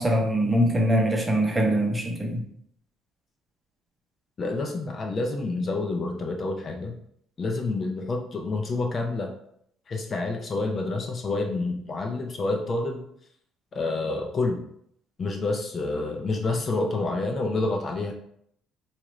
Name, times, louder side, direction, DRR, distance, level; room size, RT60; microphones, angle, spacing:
voice 1, 0.0-2.4, equal, 15° right, 1 dB, 0.8 m, -23 dB
voice 2, 4.4-7.0 7.4-9.3 9.9-13.0 13.7-14.6 15.2-18.1, left 3 dB, 40° left, 2 dB, 0.5 m, -28 dB
4.2 x 2.4 x 3.1 m, 0.70 s
cardioid pair, 110°, 0 cm